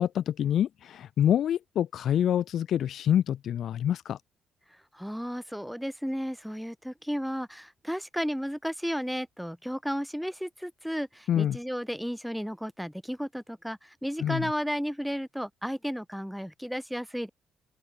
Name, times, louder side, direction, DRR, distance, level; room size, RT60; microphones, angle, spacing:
voice 1, 0.0-4.2 11.3-11.6 14.2-14.5, left 10 dB, 60° left, 0.7 m, -26 dB
voice 2, 4.7-17.3, equal, ahead, 4.0 m, -33 dB
cardioid pair, 125°, 0 cm